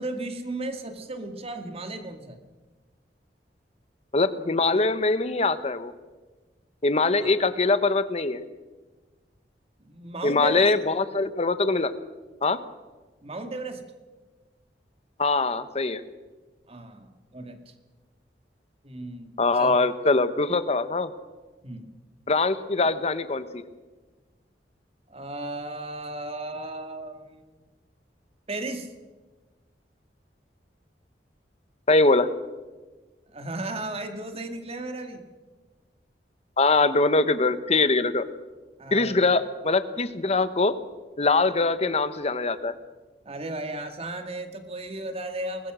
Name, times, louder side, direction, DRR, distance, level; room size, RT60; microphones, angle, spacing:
voice 1, 0.0-2.4 7.2-7.3 9.8-10.7 13.2-13.8 16.7-17.6 18.8-19.7 21.6-21.9 25.1-27.4 28.5-28.9 33.3-35.2 38.8-39.3 43.3-45.7, right 2 dB, 35° right, 6 dB, 2.1 m, -35 dB
voice 2, 4.1-5.9 6.8-8.4 10.2-11.9 12.4-12.6 15.2-16.0 19.4-21.1 22.3-23.7 31.9-32.3 36.6-38.2 38.9-40.7 41.2-42.8, left 3 dB, 40° left, 12 dB, 1.1 m, -23 dB
23.5 x 19.5 x 6.2 m, 1.3 s
head